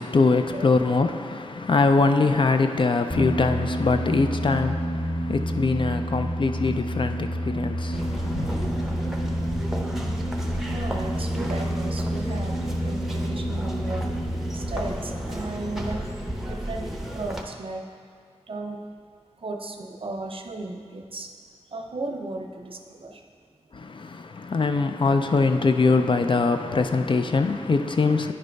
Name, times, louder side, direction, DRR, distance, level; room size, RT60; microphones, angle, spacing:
voice 1, 0.0-8.7 23.7-28.3, left 3 dB, 45° left, 0.4 m, -23 dB
sound 1, 3.1-16.3, equal, 30° left, 1.8 m, -29 dB
sound 2, 7.9-17.4, equal, 5° right, 0.7 m, -33 dB
voice 2, 9.9-14.1 14.5-16.1 16.5-17.9 18.5-18.8 19.4-21.4 21.7-23.2, right 2 dB, 50° right, 0.6 m, -35 dB
9.8 x 3.3 x 5.2 m
wide cardioid pair, 75°, 12 cm